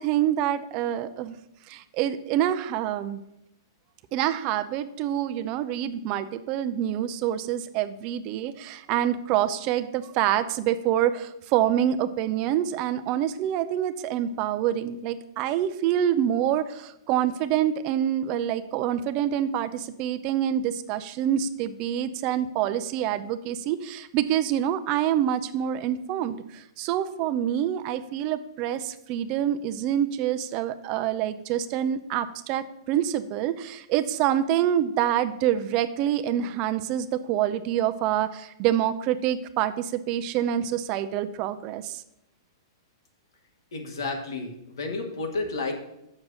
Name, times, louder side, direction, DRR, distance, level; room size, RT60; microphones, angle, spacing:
voice 1, 0.0-1.4 1.7-3.2 4.1-42.0, right 11 dB, 35° right, 11 dB, 0.5 m, -26 dB
voice 2, 43.7-45.7, left 3 dB, 85° left, 3 dB, 2.0 m, -31 dB
7.2 x 6.4 x 6.2 m, 0.82 s
hypercardioid pair, 150°, 2 cm